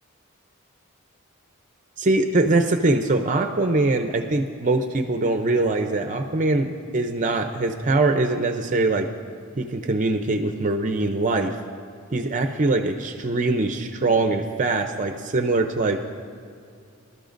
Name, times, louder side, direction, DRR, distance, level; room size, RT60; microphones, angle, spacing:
voice 1, 2.0-9.1 9.6-11.5 12.1-16.0, right 2 dB, 40° right, 6 dB, 0.5 m, -22 dB
24.5 x 12.5 x 2.6 m, 2.4 s
head